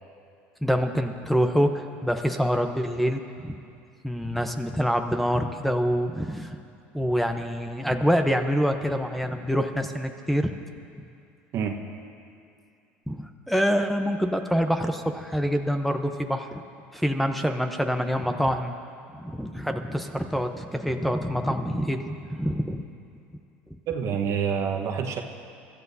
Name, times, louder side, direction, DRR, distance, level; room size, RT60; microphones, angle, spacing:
voice 1, 0.6-3.6 4.0-6.6 6.9-10.5 13.1-16.6 16.9-18.7 19.1-22.8, equal, ahead, 6 dB, 0.8 m, -26 dB
voice 2, 23.9-25.2, right 7 dB, 55° right, 3 dB, 1.3 m, -27 dB
23.5 x 13.0 x 2.8 m, 2.5 s
hypercardioid pair, 80°, 6 cm